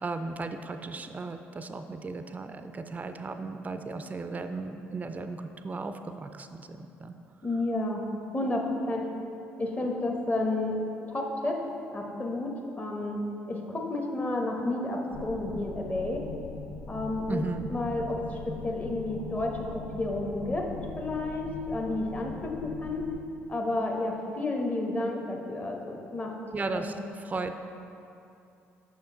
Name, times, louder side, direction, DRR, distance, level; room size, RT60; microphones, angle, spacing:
voice 1, 0.0-7.2 17.3-17.7 26.5-26.9 27.2-27.6, right 3 dB, 25° right, 8 dB, 0.4 m, -36 dB
voice 2, 7.4-8.0 8.3-9.1 9.6-10.8 11.1-11.6 11.9-13.2 13.5-16.2 16.9-17.4 17.7-20.7 21.0-23.1 23.5-26.3 26.7-26.9, left 2 dB, 25° left, 1 dB, 1.1 m, -31 dB
sound 1, 15.1-23.2, left 4 dB, 60° left, 0.5 m, -41 dB
6.4 x 5.7 x 3.8 m, 2.7 s
hypercardioid pair, 55°, 6 cm